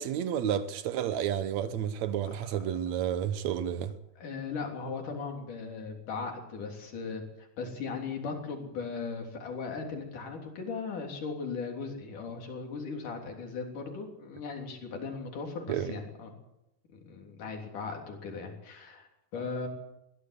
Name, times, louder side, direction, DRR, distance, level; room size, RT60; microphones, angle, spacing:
voice 1, 0.0-3.9 15.7-15.9, right 9 dB, 85° right, 1.6 m, -31 dB
voice 2, 4.2-16.3 16.9-19.7, left 4 dB, 55° left, 4.8 m, -38 dB
21.0 x 15.5 x 8.3 m
omnidirectional pair, 4.6 m